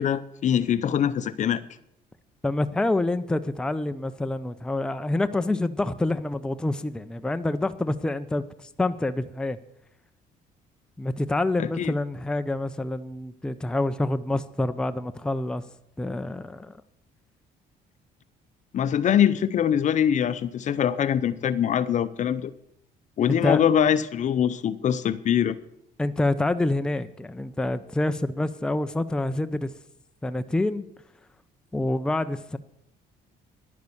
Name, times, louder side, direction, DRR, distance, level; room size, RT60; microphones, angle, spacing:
voice 1, 0.0-1.6 11.6-11.9 18.7-22.5 23.2-25.6, left 9 dB, 45° left, 15 dB, 0.6 m, -23 dB
voice 2, 2.4-9.6 11.0-15.6 16.0-16.8 23.3-23.6 26.0-29.7 30.2-30.9 31.7-32.6, left 2 dB, 5° left, 10 dB, 0.5 m, -27 dB
11.0 x 9.4 x 7.1 m, 0.77 s
cardioid pair, 110°, 17 cm